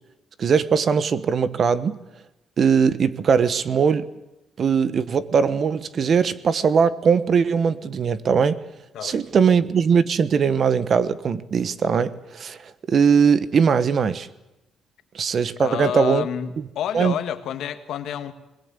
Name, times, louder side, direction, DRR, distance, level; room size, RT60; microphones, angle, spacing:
voice 1, 0.4-2.0 2.6-4.1 4.6-8.6 9.0-14.3 15.1-16.3 16.9-17.1, right 6 dB, 55° right, 14 dB, 1.2 m, -20 dB
voice 2, 15.6-16.5 16.7-18.3, left 10 dB, 75° left, 10 dB, 1.6 m, -28 dB
22.5 x 21.0 x 8.3 m, 0.95 s
cardioid pair, 75°, 0 cm